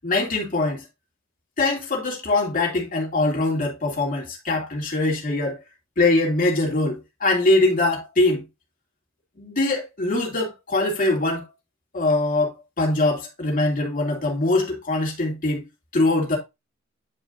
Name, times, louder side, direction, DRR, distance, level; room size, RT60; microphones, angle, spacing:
voice 1, 0.0-0.8 1.6-5.6 6.0-8.4 9.4-11.5 11.9-15.6 15.9-16.4, left 2 dB, 45° left, 2.9 m, -22 dB
10.0 x 5.0 x 2.7 m
head